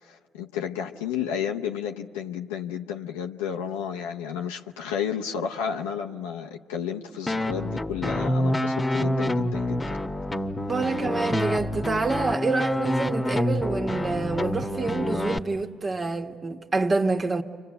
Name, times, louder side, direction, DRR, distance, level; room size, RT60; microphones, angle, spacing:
voice 1, 0.0-10.0, left 8 dB, 85° left, 0.7 m, -32 dB
sound 1, 7.3-15.4, left 1 dB, 20° left, 1.3 m, -27 dB
voice 2, 10.7-17.4, right 3 dB, 35° right, 1.5 m, -27 dB
29.5 x 25.0 x 7.8 m
hypercardioid pair, 55°, 0 cm